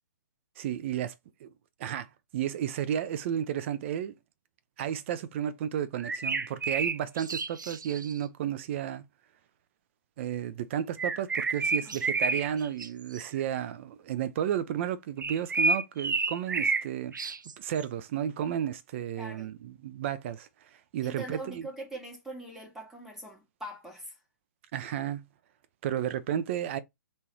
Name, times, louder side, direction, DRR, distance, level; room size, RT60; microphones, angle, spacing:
voice 1, 0.6-1.1 1.4-1.5 1.8-4.1 4.8-9.0 10.2-20.5 20.9-21.7 24.7-25.2 25.8-26.8, right 10 dB, 40° right, 0.7 m, -32 dB
sound 1, 6.0-8.2 11.0-12.9 13.1-13.4 15.2-16.9 17.1-17.8, right 3 dB, 75° right, 0.6 m, -30 dB
voice 2, 19.2-19.5 21.0-24.2, right 1 dB, 5° right, 1.7 m, -42 dB
3.8 x 2.8 x 4.5 m
figure-of-eight pair, 125°, 10 cm